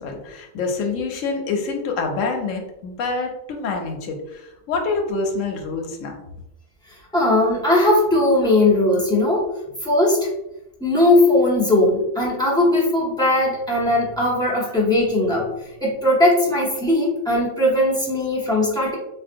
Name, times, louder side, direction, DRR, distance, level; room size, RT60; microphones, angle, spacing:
voice 1, 0.0-6.1, left 4 dB, 90° left, 2 dB, 1.0 m, -26 dB
voice 2, 7.1-9.5 9.8-10.3 10.8-15.5 15.8-18.9, left 1 dB, 5° left, -7 dB, 0.8 m, -18 dB
3.6 x 2.3 x 2.6 m, 0.87 s
omnidirectional pair, 1.3 m